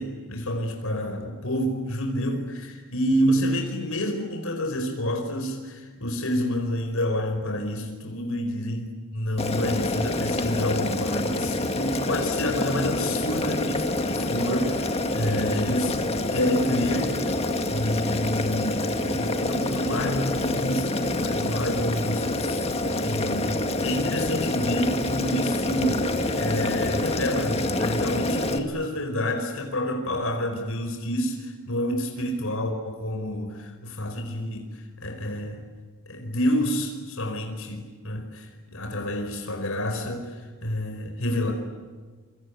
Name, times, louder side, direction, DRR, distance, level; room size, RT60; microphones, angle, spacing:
voice 1, 0.0-16.0 16.3-22.6 23.0-35.7 36.1-41.5, left 1 dB, 75° left, 4 dB, 5.0 m, -28 dB
Boiling, 9.4-28.6, left 2 dB, 30° left, 2.2 m, -27 dB
28.0 x 25.5 x 8.4 m, 1.4 s
head